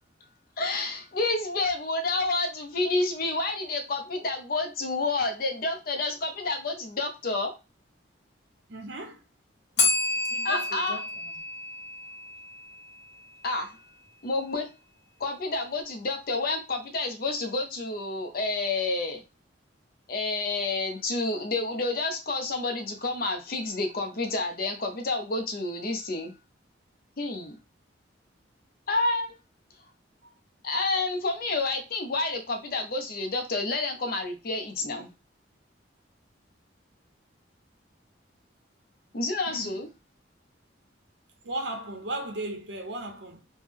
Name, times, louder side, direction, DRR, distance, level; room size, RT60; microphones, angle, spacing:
voice 1, 0.6-7.5 10.4-11.0 13.4-13.8 14.2-14.7 15.2-19.2 20.1-26.3 27.2-27.6 28.9-29.3 30.6-35.1 39.1-39.9, left 3 dB, 50° left, 0.6 m, -29 dB
voice 2, 8.7-9.2 10.3-11.1 39.5-39.7 41.4-43.4, right 1 dB, 65° right, 0.8 m, -36 dB
Bell, 9.8-12.6, left 3 dB, 65° left, 1.1 m, -29 dB
3.2 x 2.1 x 3.4 m
head